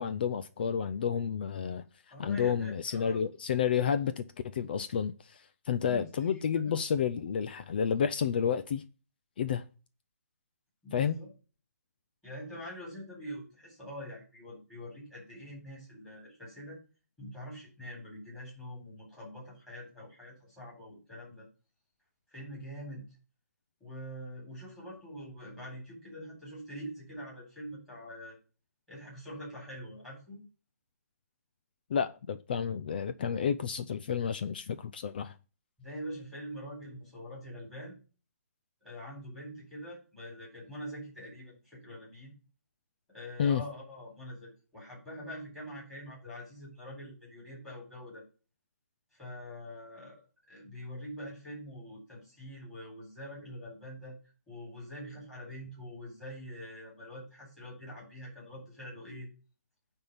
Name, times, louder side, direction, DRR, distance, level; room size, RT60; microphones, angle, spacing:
voice 1, 0.0-1.8 2.2-4.2 4.5-8.8 9.4-9.6 10.9-11.2 31.9-35.4 43.4-43.6, left 7 dB, 35° left, 0.4 m, -30 dB
voice 2, 2.1-3.3 5.8-6.4 10.8-11.3 12.2-16.8 17.2-21.5 22.3-23.1 23.8-28.4 28.9-30.4 35.8-37.9 38.8-42.3 43.1-48.2 49.1-50.2 50.5-54.2 54.5-59.3, equal, 5° left, 4.1 m, -44 dB
9.7 x 3.6 x 7.0 m
hypercardioid pair, 170°, 9 cm